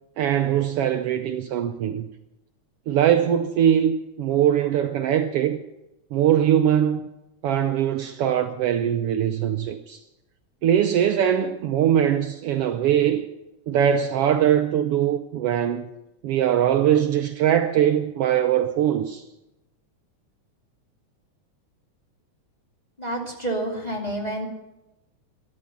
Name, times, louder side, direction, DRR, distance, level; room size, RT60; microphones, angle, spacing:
voice 1, 0.2-2.1 2.9-5.6 6.1-7.1 7.4-10.0 10.6-13.3 13.7-15.9 16.2-19.2, right 10 dB, 85° right, 1.3 m, -21 dB
voice 2, 23.0-24.5, right 1 dB, 15° left, 2.1 m, -29 dB
14.0 x 12.0 x 6.9 m
omnidirectional pair, 3.5 m